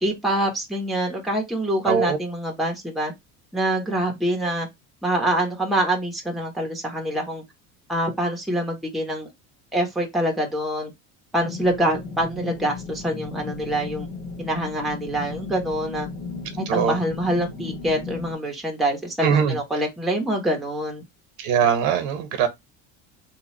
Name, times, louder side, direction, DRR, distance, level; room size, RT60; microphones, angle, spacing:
voice 1, 0.0-3.1 3.5-4.7 5.0-7.4 7.9-9.3 9.7-10.9 11.3-14.1 14.4-16.1 16.6-21.0, right 1 dB, ahead, 0.7 m, -25 dB
voice 2, 1.9-2.2 16.7-17.0 19.2-19.6 21.4-22.5, right 7 dB, 70° right, 0.9 m, -21 dB
sound 1, 11.4-18.3, left 4 dB, 80° left, 1.4 m, -35 dB
2.9 x 2.2 x 4.1 m
cardioid pair, 160°, 30 cm